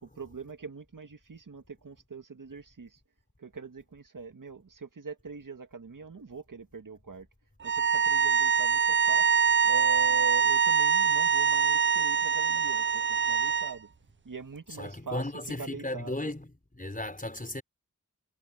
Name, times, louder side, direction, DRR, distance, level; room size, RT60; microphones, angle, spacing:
voice 1, 0.0-3.0 3.4-7.3 7.6-9.3 9.6-13.9 14.2-16.3, right 4 dB, 70° right, 2.1 m, -42 dB
sound 1, 7.6-13.7, right 7 dB, 35° right, 0.4 m, -24 dB
voice 2, 14.8-16.5 16.8-17.6, left 1 dB, 25° left, 5.4 m, -35 dB
wide cardioid pair, 55°, 33 cm